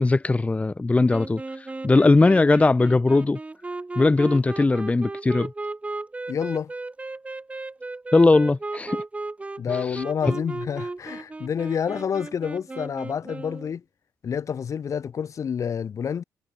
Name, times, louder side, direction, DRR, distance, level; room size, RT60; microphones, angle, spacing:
voice 1, 0.0-1.4 1.8-3.4 4.0-5.5 8.1-9.0, left 3 dB, 20° left, 1.0 m, -19 dB
sound 1, 1.1-13.7, right 2 dB, 20° right, 1.9 m, -35 dB
voice 2, 6.3-6.7 9.6-13.8 14.2-16.2, left 7 dB, 50° left, 1.2 m, -28 dB
cardioid pair, 80°, 7 cm